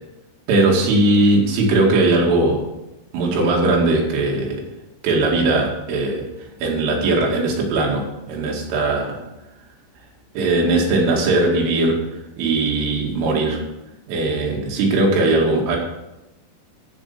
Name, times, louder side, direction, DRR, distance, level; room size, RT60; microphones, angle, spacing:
voice 1, 0.5-2.6 3.1-4.6 5.0-6.3 6.6-9.2 10.4-12.0 12.4-13.6 14.1-15.8, right 2 dB, 85° right, -1 dB, 4.8 m, -19 dB
14.5 x 5.4 x 6.9 m, 0.97 s
omnidirectional pair, 5.5 m